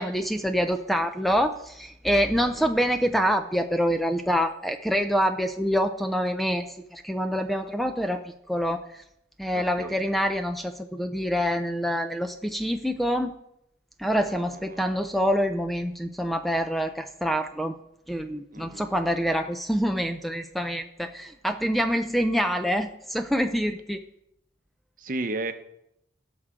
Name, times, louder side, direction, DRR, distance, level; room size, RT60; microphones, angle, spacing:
voice 1, 0.0-8.8 9.4-13.3 14.0-17.7 18.1-24.0, equal, ahead, 7 dB, 0.5 m, -26 dB
voice 2, 9.5-10.0 14.1-14.8 18.5-18.9 25.0-25.5, right 2 dB, 50° right, 8 dB, 0.8 m, -34 dB
17.0 x 6.4 x 3.7 m, 0.79 s
head